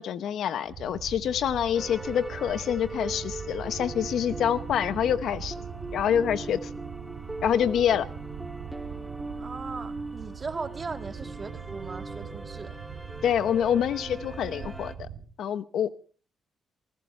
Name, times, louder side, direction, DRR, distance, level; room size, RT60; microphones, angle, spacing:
voice 1, 0.0-5.5 5.9-6.7 7.4-8.1 13.2-15.1 15.4-15.9, left 9 dB, 70° left, 13 dB, 0.9 m, -26 dB
sound 1, 0.6-15.3, right 7 dB, 75° right, 2.3 m, -41 dB
sound 2, 1.7-14.9, right 2 dB, 10° right, 1.5 m, -40 dB
voice 2, 9.4-12.8, right 4 dB, 35° right, 6 dB, 1.9 m, -38 dB
26.5 x 15.5 x 3.2 m, 0.42 s
cardioid pair, 90°, 0 cm